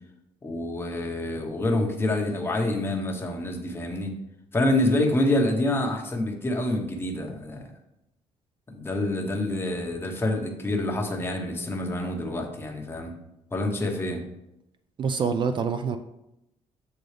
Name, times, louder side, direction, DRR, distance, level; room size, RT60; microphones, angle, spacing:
voice 1, 0.4-4.1 4.5-7.7 8.7-13.1 13.5-14.2, left 1 dB, 20° left, 2 dB, 1.0 m, -27 dB
voice 2, 15.0-16.0, right 6 dB, 40° right, 9 dB, 0.4 m, -26 dB
7.7 x 3.8 x 3.3 m, 0.87 s
cardioid pair, 115°, 12 cm